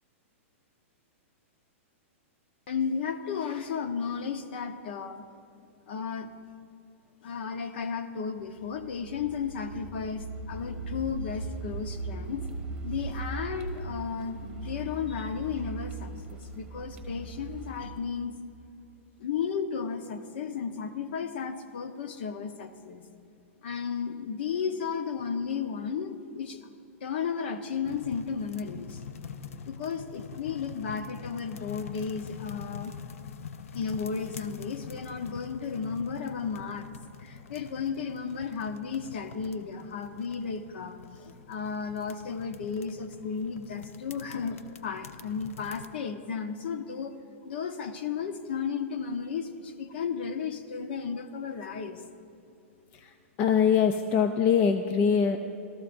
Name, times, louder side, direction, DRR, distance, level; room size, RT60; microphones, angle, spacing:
voice 1, 2.7-5.2 5.9-6.3 7.2-12.4 12.8-18.3 19.2-23.0 23.6-26.6 27.0-29.0 29.7-33.0 33.7-36.9 37.2-47.1 47.4-52.0, left 6 dB, 50° left, 8 dB, 0.9 m, -34 dB
Car, 8.5-18.0, right 3 dB, 10° right, 1.5 m, -39 dB
sound 1, 27.8-45.9, left 6 dB, 80° left, 0.7 m, -45 dB
voice 2, 52.9-55.4, left 7 dB, 20° left, 7 dB, 0.4 m, -23 dB
27.5 x 13.5 x 2.6 m, 2.7 s
supercardioid pair, 175°, 7 cm